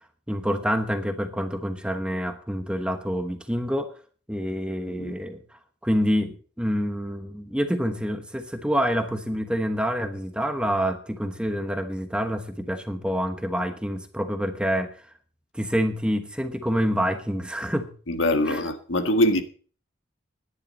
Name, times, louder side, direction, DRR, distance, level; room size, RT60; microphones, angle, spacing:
voice 1, 0.3-3.9 4.3-5.4 5.8-15.0 15.5-17.9 18.5-18.6, equal, 5° right, 1.1 m, -27 dB
voice 2, 18.1-19.4, left 1 dB, 70° left, 1.6 m, -23 dB
17.0 x 10.5 x 4.2 m
head